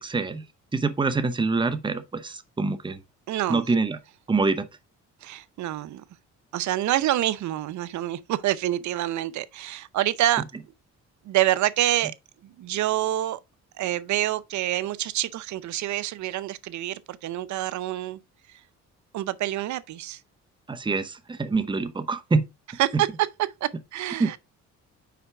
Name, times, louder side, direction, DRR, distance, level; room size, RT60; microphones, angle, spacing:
voice 1, 0.0-0.4 0.7-3.0 3.5-4.0 4.3-4.7 20.7-22.5 22.9-23.0 24.2-24.4, right 3 dB, 15° right, 0.8 m, -25 dB
voice 2, 3.3-3.6 5.2-6.0 6.5-10.4 11.2-12.1 12.4-13.4 13.8-18.2 18.5-18.6 19.1-20.2 22.8-23.3 23.6-24.4, right 14 dB, 70° right, 0.7 m, -27 dB
5.7 x 4.7 x 4.6 m
cardioid pair, 90°, 30 cm